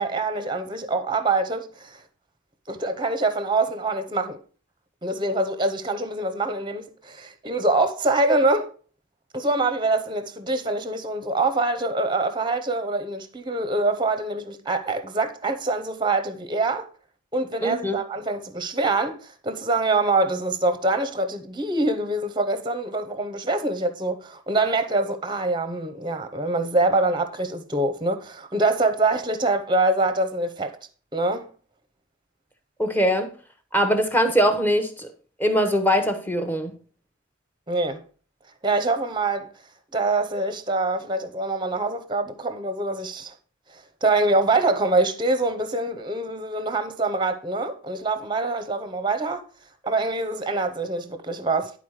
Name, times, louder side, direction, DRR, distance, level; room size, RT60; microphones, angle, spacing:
voice 1, 0.0-2.0 2.7-4.4 5.0-8.7 9.3-16.9 17.3-30.8 31.1-31.5 37.7-38.0 38.6-39.5 39.9-43.3 43.7-49.4 49.8-51.7, right 2 dB, 20° right, 0.7 m, -25 dB
voice 2, 17.6-18.0 32.8-33.3 33.7-35.1 35.4-36.8, equal, 10° left, 0.9 m, -22 dB
10.5 x 4.0 x 4.8 m
head